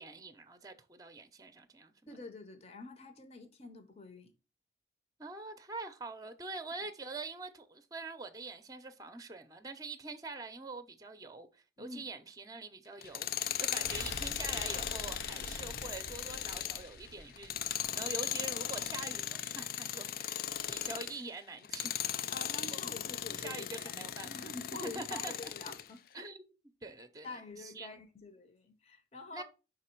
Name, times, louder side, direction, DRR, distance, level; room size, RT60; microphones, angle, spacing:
voice 1, 0.0-2.1 5.2-22.1 22.7-22.9 23.4-25.5 26.1-26.5 26.8-27.9 29.3-29.4, right 3 dB, 20° right, 0.6 m, -45 dB
voice 2, 2.1-4.3 11.8-12.0 22.3-26.0 27.2-29.4, left 2 dB, 35° left, 0.7 m, -47 dB
Tools, 13.0-21.2 21.6-25.9, left 10 dB, 55° left, 0.3 m, -38 dB
sound 1, 13.8-18.8 19.1-19.2, left 2 dB, 85° left, 1.1 m, -46 dB
5.8 x 3.9 x 4.4 m
head